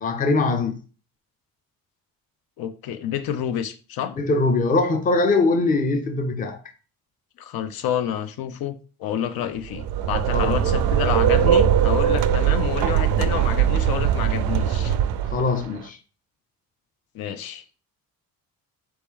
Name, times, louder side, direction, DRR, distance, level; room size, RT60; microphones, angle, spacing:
voice 1, 0.0-0.8 4.2-6.6 10.3-10.6 15.3-16.0, left 3 dB, 25° left, 0.5 m, -22 dB
voice 2, 2.6-4.1 7.4-15.0 17.1-17.6, left 9 dB, 80° left, 0.6 m, -29 dB
sound 1, 9.6-15.7, right 9 dB, 85° right, 0.5 m, -21 dB
4.2 x 3.1 x 3.6 m
cardioid pair, 160°, 35 cm